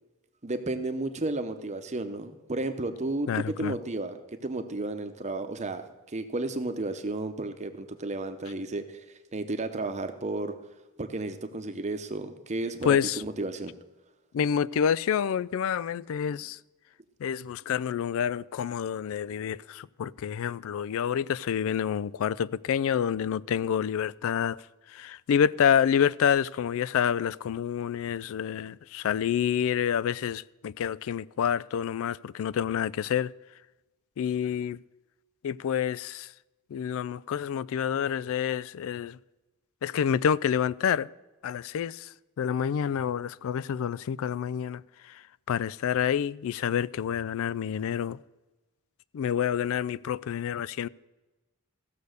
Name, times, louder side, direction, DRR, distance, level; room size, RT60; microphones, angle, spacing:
voice 1, 0.4-5.9 6.1-9.0 9.3-10.5 11.0-13.7, right 2 dB, 30° right, 0.9 m, -33 dB
voice 2, 3.3-3.7 12.8-13.2 14.3-16.6 17.2-24.6 24.9-33.3 34.2-34.8 35.4-36.3 36.7-39.2 39.8-41.1 41.4-42.1 42.4-44.8 45.5-48.2 49.1-50.9, left 8 dB, 65° left, 0.3 m, -28 dB
15.0 x 6.8 x 6.5 m
head